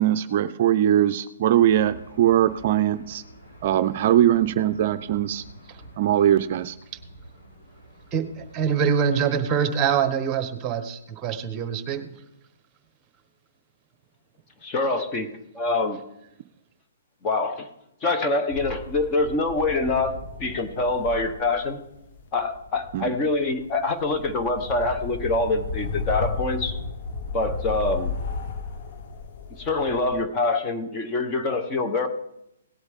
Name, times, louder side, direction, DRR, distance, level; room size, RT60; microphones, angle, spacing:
voice 1, 0.0-3.2 3.6-5.4 6.0-6.8 22.9-23.1, right 11 dB, 45° right, 10 dB, 0.5 m, -21 dB
Aircraft / Engine, 1.5-10.1, right 1 dB, 85° left, 5.5 m, -48 dB
voice 2, 8.1-12.1, right 7 dB, 20° right, 9 dB, 1.1 m, -24 dB
voice 3, 14.6-15.3 15.5-16.0 17.2-17.7 18.0-21.8 22.3-26.8 27.3-28.1 29.6-32.1, left 3 dB, 25° left, 7 dB, 1.1 m, -25 dB
sound 1, 18.5-30.2, left 4 dB, 50° left, 1.1 m, -34 dB
17.5 x 8.0 x 3.7 m, 0.84 s
hypercardioid pair, 145°, 0 cm